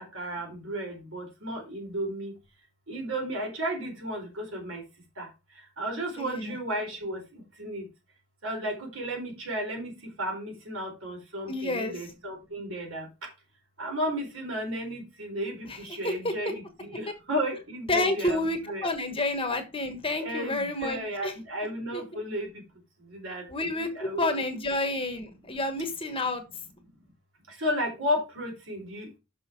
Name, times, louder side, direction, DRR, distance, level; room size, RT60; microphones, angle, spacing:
voice 1, 0.1-2.3 2.9-4.8 5.2-5.3 5.8-7.2 7.6-7.9 8.4-13.0 13.8-18.9 20.2-22.5 23.1-23.4 23.7-24.4 27.6-29.2, equal, 75° right, 1 dB, 4.3 m, -33 dB
voice 2, 6.2-6.6 11.5-12.0 15.6-15.8 16.0-16.3 17.9-21.3 21.9-22.2 23.5-26.4, left 2 dB, 25° left, 7 dB, 1.3 m, -29 dB
6.4 x 6.1 x 4.6 m, 0.28 s
head